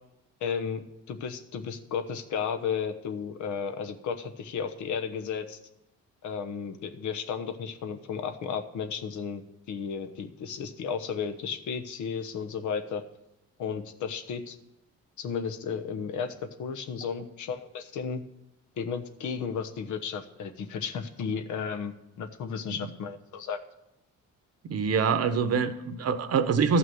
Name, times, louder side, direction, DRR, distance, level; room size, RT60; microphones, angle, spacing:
voice 1, 0.4-5.6 6.2-13.0 13.6-14.6 15.2-18.2 18.8-23.6, left 6 dB, 75° left, 7 dB, 1.1 m, -34 dB
voice 2, 24.7-26.8, right 5 dB, 55° right, 10 dB, 1.0 m, -25 dB
12.5 x 5.9 x 7.7 m, 0.89 s
cardioid pair, 90°, 30 cm